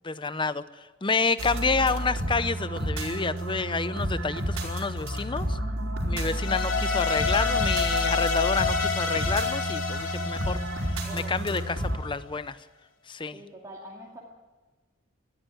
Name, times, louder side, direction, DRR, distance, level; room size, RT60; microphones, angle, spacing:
voice 1, 0.0-0.6 1.0-5.6 6.1-12.6 13.1-13.4, left 4 dB, 25° left, 14 dB, 0.7 m, -29 dB
voice 2, 1.2-2.0 11.0-11.4 13.3-14.2, equal, 15° right, -3 dB, 2.5 m, -46 dB
sound 1, 1.4-12.0, right 1 dB, 80° right, 4.9 m, -31 dB
sound 2, 6.4-11.6, left 5 dB, 85° left, 2.5 m, -28 dB
20.5 x 14.0 x 9.1 m, 1.3 s
head